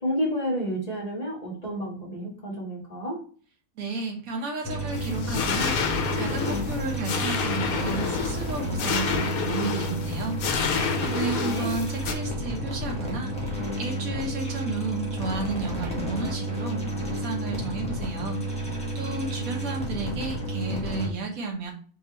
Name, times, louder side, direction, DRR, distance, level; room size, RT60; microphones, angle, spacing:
voice 1, 0.0-3.2 11.4-11.8, equal, 25° left, -4 dB, 1.6 m, -30 dB
voice 2, 3.8-10.7 11.0-16.8 17.1-21.7, right 3 dB, 75° right, 2 dB, 1.5 m, -33 dB
sound 1, 4.6-21.1, right 1 dB, 5° left, 1.0 m, -31 dB
sound 2, 4.9-12.1, left 6 dB, 90° left, 1.1 m, -29 dB
4.3 x 3.3 x 3.0 m, 0.42 s
omnidirectional pair, 1.5 m